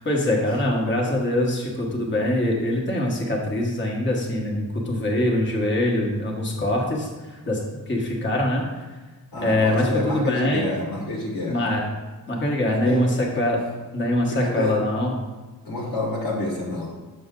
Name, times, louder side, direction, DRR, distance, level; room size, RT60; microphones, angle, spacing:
voice 1, 0.0-7.6 7.9-8.6 9.4-10.7 11.5-11.8 12.3-13.6 13.9-15.1, left 1 dB, 25° left, -1 dB, 1.4 m, -23 dB
voice 2, 9.3-11.7 12.6-13.0 14.4-14.8 15.6-16.9, left 2 dB, 60° left, -2 dB, 1.6 m, -28 dB
6.4 x 6.1 x 3.8 m, 1.3 s
cardioid pair, 90°, 41 cm